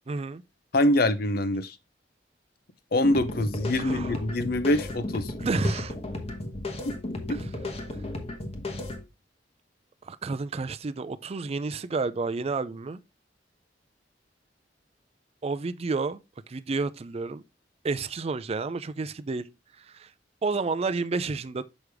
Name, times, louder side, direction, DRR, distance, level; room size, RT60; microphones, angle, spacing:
voice 1, 0.1-0.4 3.8-4.1 5.4-5.9 10.0-13.0 15.4-16.2 16.5-17.4 17.8-19.5 19.9-20.1 20.4-21.6, right 3 dB, 35° right, 0.4 m, -30 dB
voice 2, 0.7-1.8 2.9-5.3 6.8-7.0 7.3-7.4, left 1 dB, 55° left, 0.7 m, -24 dB
sound 1, 3.0-9.0, left 2 dB, 35° left, 1.1 m, -35 dB
6.3 x 4.9 x 3.4 m
head